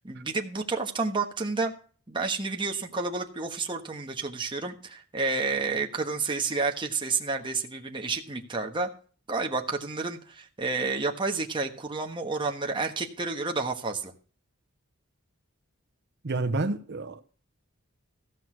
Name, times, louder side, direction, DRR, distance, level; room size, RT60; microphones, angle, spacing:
voice 1, 0.0-1.7 2.1-8.9 9.3-14.1, right 3 dB, 25° right, 1.3 m, -30 dB
voice 2, 16.2-17.2, right 2 dB, 55° right, 0.8 m, -29 dB
15.0 x 6.3 x 6.1 m
head